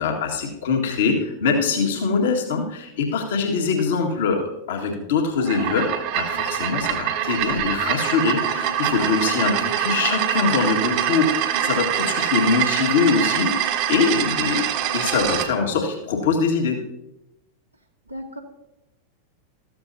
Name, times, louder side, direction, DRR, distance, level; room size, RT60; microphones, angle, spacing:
voice 1, 0.0-14.7 14.9-16.8, left 5 dB, 60° left, 2 dB, 1.9 m, -23 dB
Spinning Jar Cap, 5.4-15.5, right 10 dB, 45° right, 1.3 m, -24 dB
voice 2, 9.4-10.0 18.1-18.4, right 2 dB, 85° right, 0 dB, 1.7 m, -35 dB
14.0 x 13.5 x 2.8 m, 0.89 s
figure-of-eight pair, 90°, 0 cm